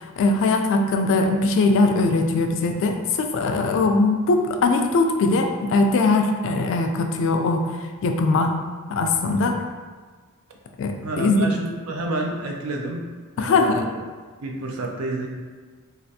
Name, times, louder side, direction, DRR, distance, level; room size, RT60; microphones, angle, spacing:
voice 1, 0.0-7.7 8.0-8.6 8.9-9.6 10.8-11.5 13.4-13.8, left 3 dB, 60° left, 4 dB, 0.3 m, -21 dB
voice 2, 11.0-13.1 13.4-13.9 14.4-15.3, right 2 dB, 70° right, 1 dB, 0.5 m, -29 dB
3.2 x 2.4 x 2.7 m, 1.5 s
head